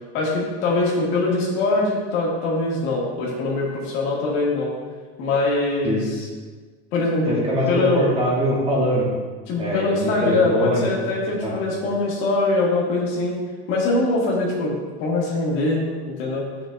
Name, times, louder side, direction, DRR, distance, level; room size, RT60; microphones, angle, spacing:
voice 1, 0.1-4.7 5.2-6.3 6.9-7.4 7.7-8.1 9.5-13.3 13.7-14.7 15.0-16.4, left 2 dB, 70° left, -4 dB, 2.0 m, -22 dB
voice 2, 7.3-9.1 9.6-10.9 11.4-11.5, equal, 15° right, -4 dB, 1.1 m, -22 dB
7.9 x 5.8 x 2.6 m, 1.4 s
cardioid pair, 160°, 34 cm